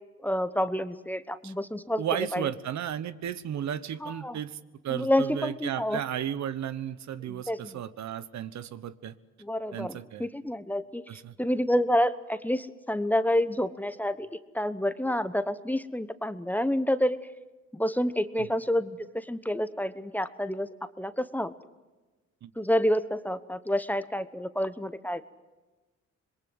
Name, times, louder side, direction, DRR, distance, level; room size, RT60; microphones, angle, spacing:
voice 1, 0.2-2.5 4.0-4.4 4.9-6.0 7.3-7.8 9.4-11.0 11.4-14.3 14.5-17.2 17.7-20.7 21.0-21.5 22.6-25.2, equal, 5° left, 13 dB, 1.1 m, -28 dB
voice 2, 2.0-4.6 4.8-9.1 9.7-10.3 11.1-11.3 18.4-18.5 22.4-22.5, right 10 dB, 65° right, 15 dB, 1.2 m, -34 dB
26.0 x 22.0 x 7.9 m, 1.2 s
cardioid pair, 90°, 30 cm